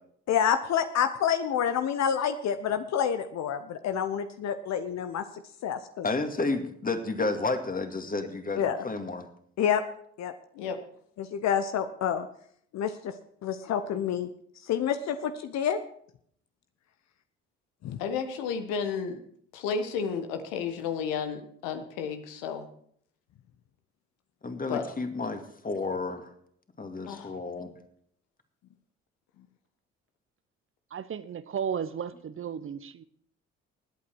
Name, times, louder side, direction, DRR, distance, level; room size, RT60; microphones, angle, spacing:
voice 1, 0.3-5.2 5.6-6.1 8.6-8.9 9.6-9.8 10.2-10.3 11.2-12.3 12.7-13.2 13.4-14.3 14.6-15.8 17.8-18.0, left 8 dB, 60° left, 9 dB, 0.9 m, -28 dB
voice 2, 6.0-9.2 24.4-26.3 26.8-27.7, left 3 dB, 25° left, 6 dB, 2.3 m, -31 dB
voice 3, 18.0-19.2 19.5-22.7 24.7-24.8 27.1-27.3, left 6 dB, 75° left, 8 dB, 1.4 m, -32 dB
voice 4, 30.9-33.0, right 7 dB, 40° right, 14 dB, 0.9 m, -34 dB
19.5 x 8.5 x 4.7 m, 0.64 s
hypercardioid pair, 50°, 31 cm